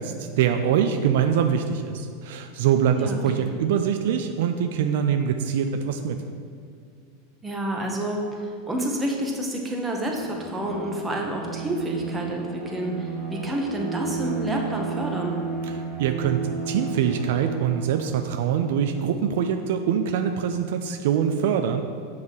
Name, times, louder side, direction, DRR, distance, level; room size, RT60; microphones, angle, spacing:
voice 1, 0.0-6.2 15.7-16.4 16.7-21.8, right 8 dB, 65° right, 6 dB, 0.3 m, -24 dB
voice 2, 2.9-3.5 7.4-15.4, right 1 dB, 15° right, 0 dB, 1.2 m, -29 dB
Bowed string instrument, 10.0-18.5, right 5 dB, 40° right, 1.3 m, -33 dB
7.2 x 3.1 x 5.4 m, 2.3 s
hypercardioid pair, 95°, 0 cm